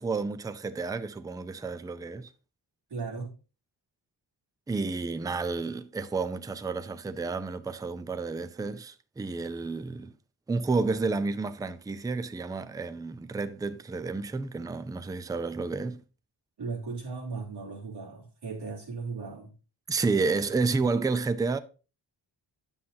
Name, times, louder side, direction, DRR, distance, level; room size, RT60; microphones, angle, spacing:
voice 1, 0.0-2.3 4.7-10.1 10.5-16.0 19.9-21.6, right 4 dB, 10° right, 0.3 m, -30 dB
voice 2, 2.9-3.3 16.6-19.5, right 4 dB, 65° right, 3.0 m, -37 dB
9.5 x 7.1 x 2.7 m
wide cardioid pair, 160°, 44 cm